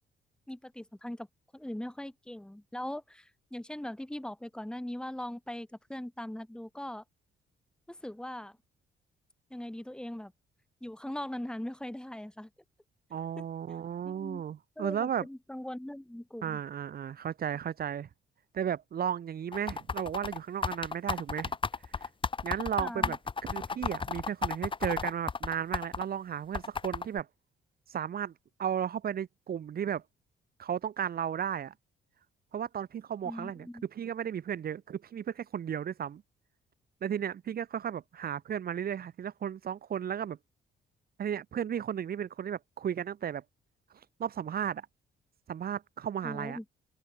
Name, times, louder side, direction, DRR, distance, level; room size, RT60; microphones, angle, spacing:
voice 1, 0.5-1.3 1.5-7.0 7.9-8.6 9.5-10.3 10.8-12.5 13.4-13.5 14.0-14.4 14.8-16.6 22.8-23.2 33.2-33.8 46.2-46.6, left 1 dB, 5° left, 2.4 m, -40 dB
voice 2, 13.1-15.3 16.4-18.1 18.5-21.5 22.4-23.2 23.5-27.3 27.9-28.3 28.6-30.0 30.6-31.7 32.5-36.2 37.0-40.4 41.2-43.4 44.2-44.9 45.5-46.6, right 9 dB, 50° right, 1.0 m, -34 dB
sound 1, 19.5-26.0 26.5-27.2, left 4 dB, 25° left, 0.9 m, -33 dB
open air
cardioid pair, 90°, 20 cm